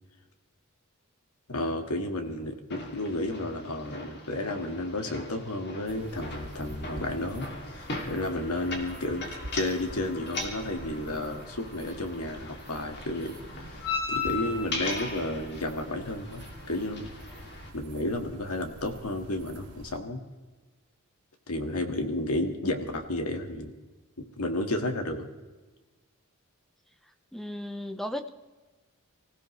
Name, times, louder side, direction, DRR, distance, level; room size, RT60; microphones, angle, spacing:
voice 1, 1.5-13.4 13.7-17.1 17.7-20.2 21.5-23.7 24.2-25.3, left 1 dB, 80° left, 5 dB, 2.0 m, -32 dB
sound 1, 2.7-17.7, left 3 dB, 50° left, 2.8 m, -38 dB
sound 2, 5.8-20.0, right 1 dB, 90° right, 2.2 m, -47 dB
voice 2, 27.3-28.3, left 1 dB, ahead, 8 dB, 0.7 m, -35 dB
25.5 x 16.0 x 3.3 m, 1.2 s
head